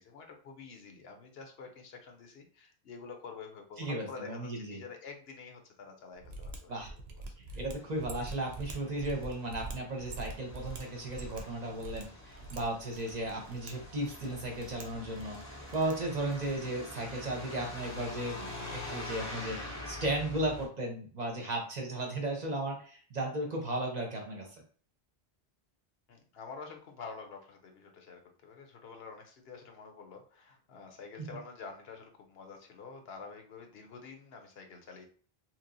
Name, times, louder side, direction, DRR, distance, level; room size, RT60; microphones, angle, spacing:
voice 1, 0.0-7.2 7.5-7.7 26.1-35.0, left 5 dB, 75° left, 4 dB, 0.9 m, -48 dB
voice 2, 3.8-4.8 6.7-6.9 7.6-24.5, right 1 dB, 45° right, 1 dB, 0.8 m, -35 dB
Mechanisms, 6.2-16.7, right 2 dB, 85° right, 0.9 m, -46 dB
Truck, 7.8-20.7, left 2 dB, 20° left, 0.5 m, -45 dB
3.0 x 2.9 x 2.6 m, 0.43 s
omnidirectional pair, 1.0 m